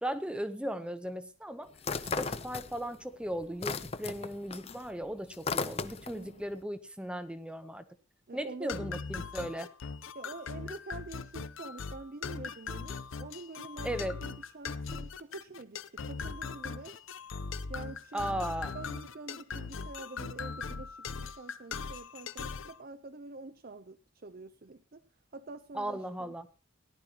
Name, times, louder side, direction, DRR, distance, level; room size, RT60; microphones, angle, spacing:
voice 1, 0.0-1.7 2.2-7.8 8.3-9.7 13.8-14.2 18.1-18.7 25.7-26.5, right 1 dB, 5° right, 11 dB, 0.8 m, -37 dB
sound 1, 1.8-3.0 3.3-6.3, left 4 dB, 30° left, 0.5 m, -36 dB
voice 2, 6.1-6.6 8.3-8.8 10.1-17.0 17.7-18.4 18.7-25.0 25.3-26.3, right 3 dB, 45° right, 11 dB, 0.6 m, -46 dB
sound 2, 8.7-22.8, left 5 dB, 70° left, 0.7 m, -40 dB
18.0 x 11.5 x 2.9 m, 0.35 s
head